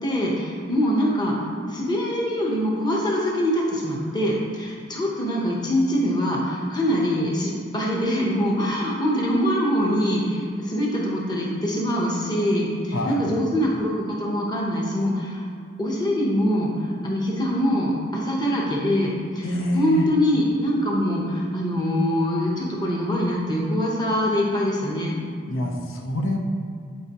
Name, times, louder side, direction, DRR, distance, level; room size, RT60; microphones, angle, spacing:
voice 1, 0.0-1.4 1.7-15.5 15.8-16.7 17.0-19.4 19.7-25.2, equal, 20° left, -3 dB, 1.0 m, -23 dB
voice 2, 12.9-13.3 19.4-20.1 25.5-26.4, left 1 dB, 85° left, 1 dB, 0.9 m, -26 dB
11.5 x 4.6 x 3.0 m, 2.2 s
head